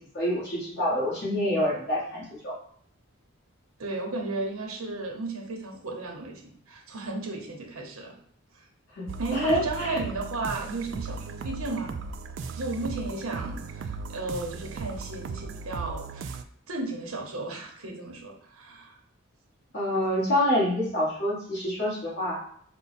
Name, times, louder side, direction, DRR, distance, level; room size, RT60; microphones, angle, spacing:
voice 1, 0.1-2.5 8.9-9.0 9.3-10.0 19.7-22.4, left 1 dB, 50° left, -5 dB, 1.6 m, -26 dB
voice 2, 3.8-8.1 9.2-12.0 12.5-16.4 16.7-19.0, right 2 dB, 85° right, 1 dB, 1.0 m, -34 dB
sound 1, 9.1-16.4, right 4 dB, 55° right, 0.3 m, -37 dB
5.2 x 2.2 x 4.2 m, 0.62 s
head